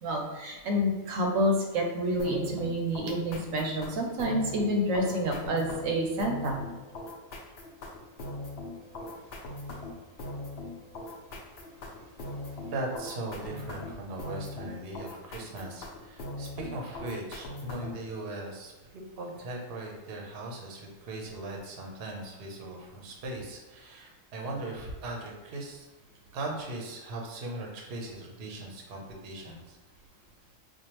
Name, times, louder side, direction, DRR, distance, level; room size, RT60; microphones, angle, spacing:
voice 1, 0.0-6.6, equal, 85° right, 1 dB, 1.0 m, -28 dB
sound 1, 2.2-18.1, left 2 dB, 55° left, 0.8 m, -40 dB
voice 2, 12.5-25.9 26.3-29.8, right 2 dB, 55° right, 0 dB, 0.8 m, -39 dB
4.4 x 2.3 x 3.0 m, 1.2 s
omnidirectional pair, 1.4 m